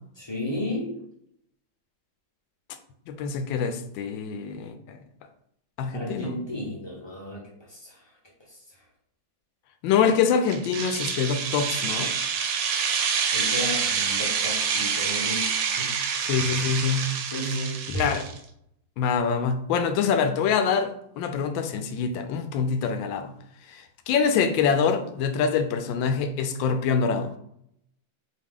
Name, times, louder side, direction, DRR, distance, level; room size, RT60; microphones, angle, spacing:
voice 1, 0.2-1.0 5.9-7.4 7.7-8.0 8.5-8.6 13.3-15.9 17.3-17.8, left 1 dB, 30° left, -3 dB, 0.5 m, -33 dB
voice 2, 3.1-5.0 5.8-6.4 9.8-12.1 16.3-17.1 17.9-18.2 19.0-20.9 21.2-23.3 23.7-27.3, left 6 dB, 80° left, 8 dB, 1.3 m, -25 dB
sound 1, 10.5-18.4, right 6 dB, 85° right, 1.3 m, -27 dB
4.1 x 2.8 x 3.6 m, 0.73 s
omnidirectional pair, 2.1 m